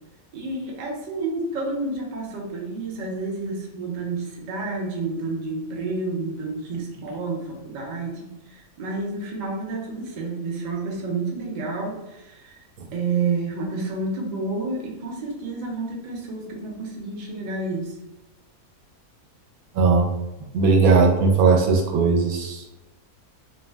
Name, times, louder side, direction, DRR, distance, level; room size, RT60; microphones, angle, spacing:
voice 1, 0.3-18.0, right 3 dB, 55° right, -2 dB, 0.5 m, -30 dB
voice 2, 19.7-20.1 20.5-22.6, right 4 dB, 80° right, 1 dB, 1.0 m, -18 dB
2.6 x 2.1 x 3.3 m, 1.0 s
omnidirectional pair, 1.5 m